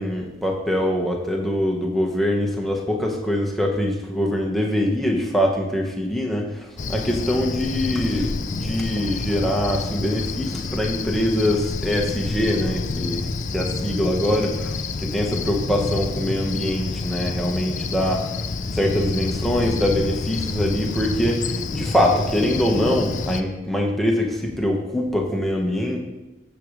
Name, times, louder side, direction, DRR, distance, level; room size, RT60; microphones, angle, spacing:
voice 1, 0.0-18.5 18.7-26.0, equal, ahead, -1 dB, 1.2 m, -23 dB
Cricket, 6.8-23.4, left 3 dB, 45° left, 0.4 m, -28 dB
15.0 x 5.1 x 3.2 m, 1.0 s
head